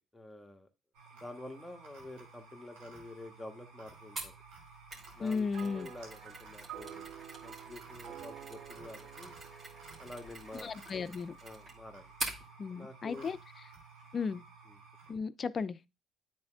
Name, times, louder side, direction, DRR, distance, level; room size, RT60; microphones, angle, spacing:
voice 1, 0.1-0.7 1.1-4.3 5.1-7.1 7.4-9.4 10.0-10.8 11.4-12.1 12.7-13.3 14.7-14.8, left 2 dB, 10° left, 1.3 m, -48 dB
sound 1, 0.9-15.1, right 4 dB, 85° right, 1.8 m, -55 dB
Mechanisms, 4.2-12.4, right 2 dB, 40° right, 2.5 m, -46 dB
voice 2, 5.2-5.9 10.6-11.3 12.6-13.4 14.1-14.4 15.1-15.8, left 5 dB, 45° left, 0.4 m, -35 dB
sound 2, 5.5-11.0, right 11 dB, 65° right, 0.3 m, -50 dB
9.4 x 4.2 x 2.5 m
supercardioid pair, 70°, 0 cm